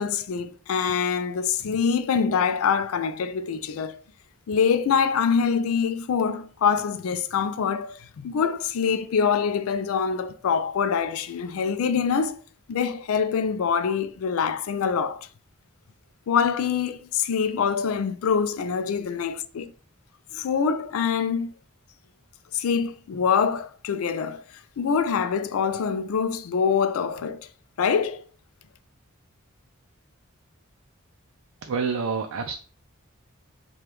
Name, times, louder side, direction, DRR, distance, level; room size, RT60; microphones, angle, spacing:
voice 1, 0.0-4.0 4.5-12.4 12.7-15.2 16.3-19.7 20.3-21.5 22.5-24.4 24.8-27.4 27.8-28.2, left 6 dB, 80° left, 0.4 m, -25 dB
voice 2, 31.6-32.5, right 5 dB, 90° right, 0.4 m, -27 dB
4.9 x 2.3 x 3.0 m
head